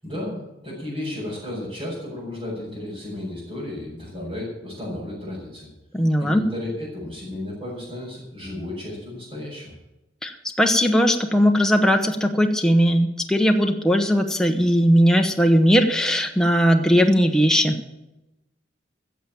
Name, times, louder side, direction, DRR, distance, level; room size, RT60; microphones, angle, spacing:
voice 1, 0.0-5.7 6.2-9.7, left 1 dB, 25° right, -10 dB, 6.0 m, -33 dB
voice 2, 5.9-6.4 10.2-17.8, equal, 5° left, 3 dB, 0.9 m, -18 dB
15.0 x 7.5 x 8.9 m, 0.95 s
head